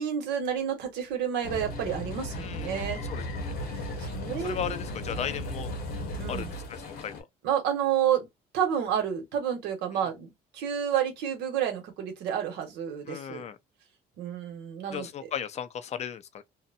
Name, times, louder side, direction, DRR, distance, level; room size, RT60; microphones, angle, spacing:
voice 1, 0.0-3.0 3.7-4.8 6.2-6.5 7.4-8.3 8.5-13.4 14.2-15.1, right 9 dB, 90° right, 1.1 m, -30 dB
sound 1, 1.4-7.2, left 1 dB, 70° left, 1.0 m, -35 dB
voice 2, 2.4-3.6 4.4-5.7 6.3-7.3 13.1-13.6 14.9-16.4, left 9 dB, 40° left, 0.5 m, -36 dB
2.8 x 2.2 x 2.5 m
cardioid pair, 110°, 17 cm